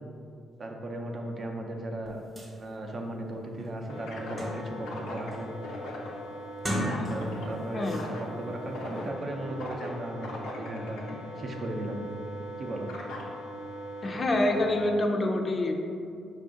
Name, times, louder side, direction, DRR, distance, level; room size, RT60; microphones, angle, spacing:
voice 1, 0.6-2.2 2.6-5.5 6.7-11.0 11.4-12.0 12.6-12.9, right 1 dB, 45° right, 2 dB, 0.5 m, -36 dB
sound 1, 2.0-2.1 2.4-2.5 3.1-3.2 3.6-4.9 5.3-5.7 6.5-7.5 7.8-8.1, equal, 20° right, 1.0 m, -35 dB
sound 2, 3.9-14.8, equal, 90° left, 0.6 m, -39 dB
voice 2, 14.0-15.7, left 1 dB, 40° left, 3 dB, 0.4 m, -26 dB
4.8 x 2.5 x 3.7 m, 2.4 s
cardioid pair, 90°, 0 cm